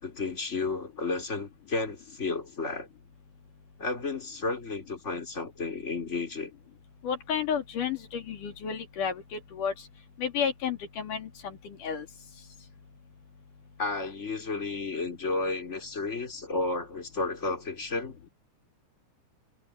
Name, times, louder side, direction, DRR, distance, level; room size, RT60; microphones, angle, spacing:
voice 1, 0.0-2.9 3.8-6.5 13.8-18.2, left 3 dB, 20° left, 4.8 m, -32 dB
voice 2, 7.0-9.7 10.2-12.1, left 7 dB, 80° left, 4.2 m, -32 dB
omnidirectional pair, 3.7 m